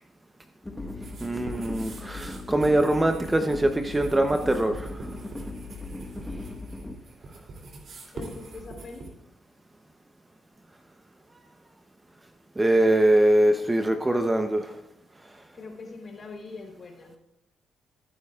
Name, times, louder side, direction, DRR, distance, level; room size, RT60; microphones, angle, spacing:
sound 1, 0.6-7.0, left 2 dB, 15° left, 1.2 m, -38 dB
sound 2, 1.0-9.1, right 3 dB, 55° right, 2.8 m, -44 dB
voice 1, 1.2-4.9 12.6-14.7, right 1 dB, 15° right, 6 dB, 0.8 m, -22 dB
voice 2, 8.1-9.1 15.5-17.2, left 3 dB, 45° left, 2 dB, 3.6 m, -42 dB
19.0 x 9.9 x 2.4 m, 0.83 s
cardioid pair, 90°, 0 cm